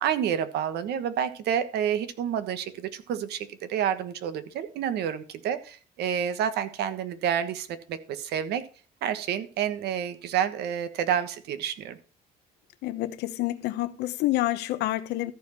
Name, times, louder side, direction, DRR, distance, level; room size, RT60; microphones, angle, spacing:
voice 1, 0.0-8.6 9.0-12.0, right 9 dB, 75° right, 1.3 m, -29 dB
voice 2, 12.8-15.3, left 16 dB, 80° left, 1.0 m, -28 dB
14.0 x 4.9 x 5.7 m
cardioid pair, 110°, 17 cm